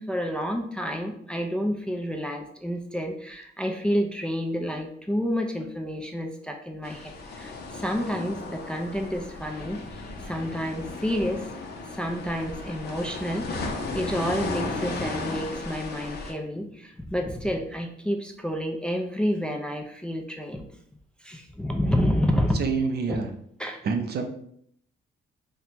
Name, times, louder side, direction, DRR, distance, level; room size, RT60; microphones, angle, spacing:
voice 1, 0.0-11.4 11.9-20.7 21.2-22.6 23.6-23.8, equal, 5° left, 2 dB, 0.4 m, -29 dB
sound 1, 6.8-16.3, left 3 dB, 55° left, 0.6 m, -35 dB
voice 2, 22.5-23.3 23.7-24.3, right 5 dB, 55° right, 6 dB, 0.5 m, -27 dB
4.2 x 2.1 x 2.8 m, 0.67 s
cardioid pair, 90°, 20 cm